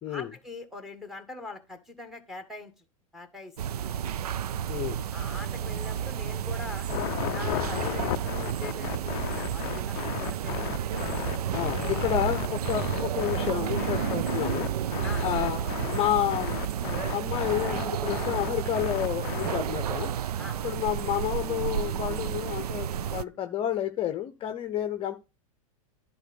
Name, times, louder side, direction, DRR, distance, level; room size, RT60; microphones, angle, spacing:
voice 1, 0.1-2.7 3.1-3.6 5.1-6.9 7.3-10.8 12.0-12.2 15.0-15.4 20.4-20.7, left 3 dB, ahead, 1.9 m, -42 dB
sound 1, 3.6-23.2, right 9 dB, 85° right, 0.5 m, -31 dB
voice 2, 4.7-5.0 11.5-16.6 16.9-20.1 20.6-25.1, left 11 dB, 30° left, 0.8 m, -30 dB
sound 2, 6.9-19.8, left 18 dB, 45° left, 0.4 m, -34 dB
10.5 x 4.0 x 6.2 m
hypercardioid pair, 115°, 19 cm